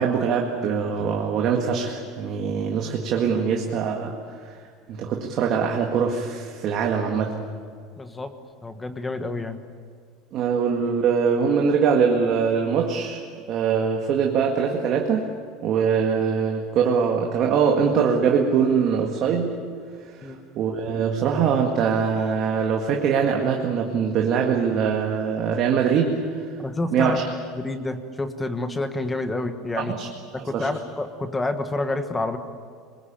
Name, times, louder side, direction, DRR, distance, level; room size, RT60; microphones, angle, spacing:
voice 1, 0.0-4.1 4.5-4.6 4.9-7.4 10.3-13.2 13.5-15.3 15.6-19.6 20.1-26.5 26.9-27.2 29.8-30.1 30.3-30.7, right 6 dB, 40° right, 1 dB, 1.9 m, -23 dB
voice 2, 8.0-8.3 8.6-9.6 20.2-20.4 26.6-27.2 27.5-29.9 30.3-32.4, left 2 dB, 10° left, 8 dB, 1.3 m, -28 dB
25.0 x 22.0 x 8.9 m, 2.1 s
cardioid pair, 170°, 0 cm